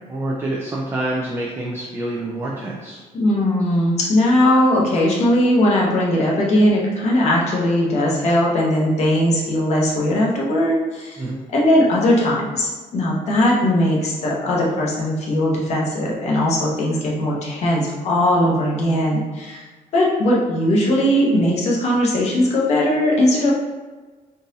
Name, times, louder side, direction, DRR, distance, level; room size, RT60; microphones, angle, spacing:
voice 1, 0.1-3.0 11.2-11.4, right 1 dB, 20° right, -4 dB, 0.4 m, -27 dB
voice 2, 3.1-11.2 11.5-19.6 19.9-23.5, left 1 dB, 55° left, -4 dB, 0.9 m, -19 dB
3.9 x 2.5 x 2.7 m, 1.3 s
cardioid pair, 130°, 14 cm